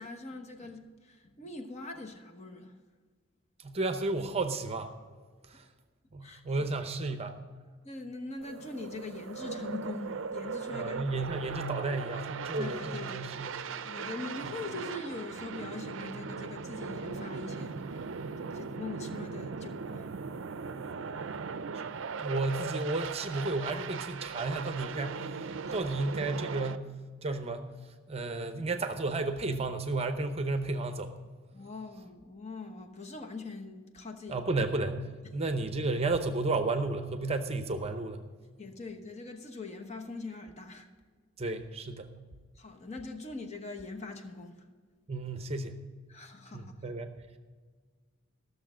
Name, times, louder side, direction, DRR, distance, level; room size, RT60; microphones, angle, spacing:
voice 1, 0.0-2.7 6.2-6.7 7.8-11.1 12.5-13.4 13.8-20.1 25.7-25.8 31.5-34.4 38.6-40.9 42.6-44.7 46.1-46.7, left 3 dB, 35° left, 1.0 m, -42 dB
voice 2, 3.6-4.9 5.5-5.6 6.1-7.3 10.7-13.6 22.2-25.4 25.7-26.9 27.2-27.7 28.1-31.1 34.3-35.0 35.3-38.2 41.4-42.1 45.1-45.8 46.5-47.2, right 2 dB, 30° right, 0.7 m, -32 dB
sound 1, 8.4-26.8, right 5 dB, 65° right, 0.5 m, -39 dB
14.0 x 6.6 x 6.2 m
head